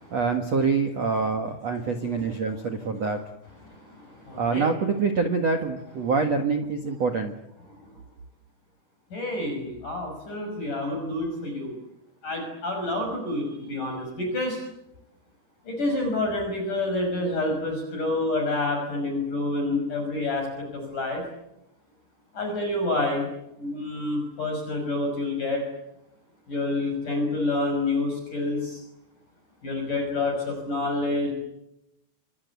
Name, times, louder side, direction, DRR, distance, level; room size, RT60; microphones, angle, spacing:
voice 1, 0.1-3.2 4.4-7.3, right 4 dB, 75° right, 5 dB, 1.5 m, -25 dB
voice 2, 3.7-4.6 9.1-11.8 12.2-14.6 15.7-21.3 22.3-23.3 23.6-25.6 26.5-28.8 29.6-31.3, left 2 dB, 40° left, 2 dB, 7.3 m, -28 dB
28.0 x 25.0 x 8.3 m, 0.85 s
omnidirectional pair, 6.0 m